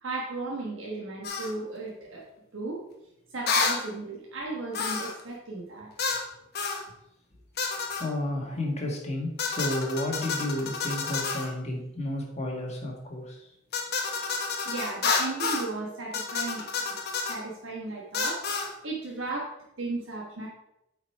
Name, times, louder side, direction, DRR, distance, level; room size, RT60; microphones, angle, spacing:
voice 1, 0.0-2.3 2.5-2.8 3.3-5.9 8.5-8.6 14.6-17.0 17.3-18.4 18.8-20.5, right 2 dB, 90° right, -3 dB, 1.3 m, -35 dB
sound 1, 1.2-1.5 3.5-3.8 4.7-5.2 6.0-6.3 6.6-6.8 7.6-8.1 9.4-11.5 13.7-15.7 16.1-17.4 18.1-18.7, left 4 dB, 55° left, 1.1 m, -29 dB
voice 2, 8.0-13.5, left 1 dB, 35° left, -1 dB, 1.8 m, -32 dB
8.0 x 4.8 x 4.7 m, 0.85 s
head